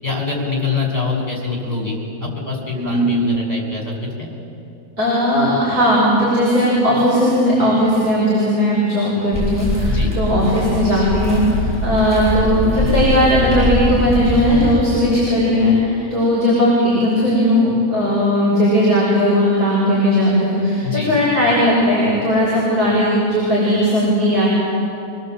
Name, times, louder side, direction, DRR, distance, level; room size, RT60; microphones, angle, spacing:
voice 1, 0.0-4.3 9.9-10.1 20.8-21.2, left 4 dB, 25° left, -1 dB, 5.5 m, -24 dB
voice 2, 2.7-3.2 5.0-24.5, equal, 70° right, -8 dB, 6.5 m, -17 dB
sound 1, 9.3-14.8, left 1 dB, 5° right, 7.8 m, -22 dB
26.5 x 18.5 x 7.8 m, 2.7 s
omnidirectional pair, 1.7 m